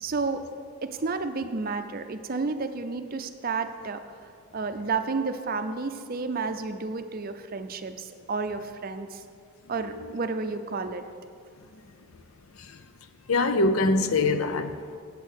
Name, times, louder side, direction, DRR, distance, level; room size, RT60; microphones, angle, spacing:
voice 1, 0.0-0.5 0.8-4.0 4.5-9.2 9.7-11.1, right 4 dB, 45° right, 0.5 m, -31 dB
voice 2, 13.3-15.0, left 2 dB, 75° left, 0.6 m, -24 dB
8.3 x 8.2 x 6.4 m
head